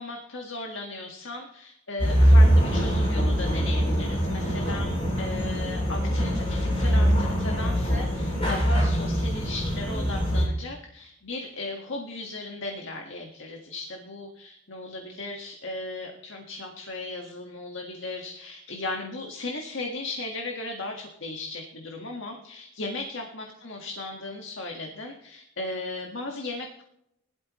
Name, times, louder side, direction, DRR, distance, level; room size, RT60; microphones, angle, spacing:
voice 1, 0.0-26.8, left 2 dB, 60° left, 1 dB, 1.8 m, -36 dB
sound 1, 2.0-10.5, equal, 25° left, 6.0 m, -23 dB
20.0 x 12.5 x 3.2 m, 0.79 s
head